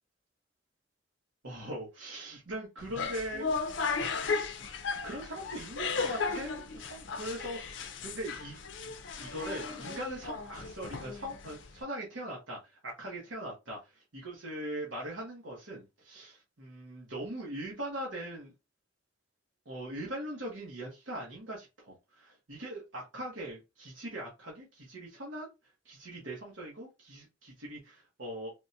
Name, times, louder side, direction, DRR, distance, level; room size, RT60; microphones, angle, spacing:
voice 1, 1.4-3.8 4.3-4.4 5.0-8.6 8.9-18.5 19.6-25.5 25.8-28.5, right 1 dB, 85° right, 1.1 m, -41 dB
sound 1, 2.8-11.8, left 4 dB, 70° left, 0.5 m, -36 dB
3.5 x 2.2 x 2.7 m
head